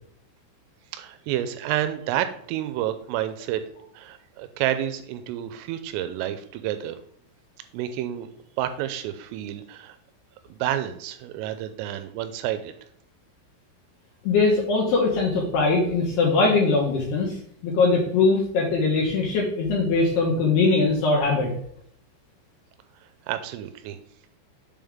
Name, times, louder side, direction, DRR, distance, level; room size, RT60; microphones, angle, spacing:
voice 1, 0.9-3.6 3.9-7.0 7.7-8.3 8.6-10.0 10.5-12.8 23.3-24.0, right 12 dB, 85° right, 10 dB, 3.2 m, -29 dB
voice 2, 14.2-17.4 17.6-21.5, left 3 dB, 70° left, -2 dB, 2.8 m, -21 dB
7.4 x 5.5 x 3.5 m, 0.65 s
omnidirectional pair, 5.9 m